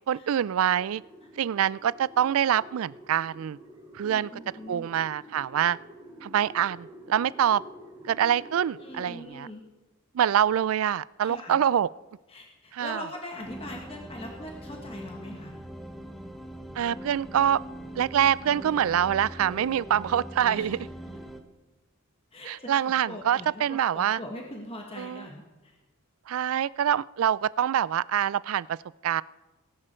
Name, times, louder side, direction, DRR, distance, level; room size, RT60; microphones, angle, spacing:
voice 1, 0.1-1.0 1.4-3.6 3.9-4.3 4.7-5.8 6.2-7.6 8.1-9.5 10.1-11.9 12.7-13.0 16.8-17.6 18.0-20.9 22.5-24.2 25.0-25.2 26.3-28.8 29.0-29.2, right 9 dB, 75° right, 21 dB, 0.3 m, -25 dB
sound 1, 0.6-9.2, equal, 20° right, 3.5 m, -48 dB
voice 2, 4.0-4.9 8.8-9.7 11.2-11.6 12.3-15.6 20.5-20.8 22.3-25.8, left 1 dB, 25° left, 1 dB, 1.5 m, -42 dB
sound 2, 13.4-21.4, right 1 dB, ahead, 1.0 m, -41 dB
19.5 x 11.0 x 4.4 m, 1.1 s
head